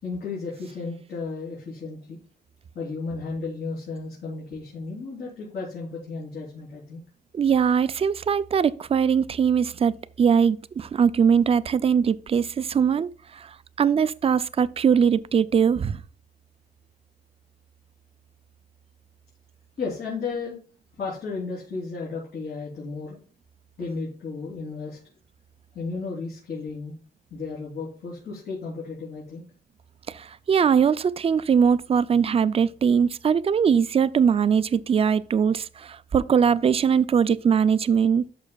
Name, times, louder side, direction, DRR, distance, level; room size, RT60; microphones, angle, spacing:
voice 1, 0.0-2.2 2.7-7.0 19.8-20.6 20.9-23.2 23.8-25.0 25.7-26.9 27.3-29.4, left 4 dB, 70° left, 3.4 m, -34 dB
voice 2, 7.3-16.0 30.1-38.3, right 7 dB, 35° right, 0.3 m, -21 dB
11.5 x 6.2 x 2.3 m
wide cardioid pair, 160°, 18 cm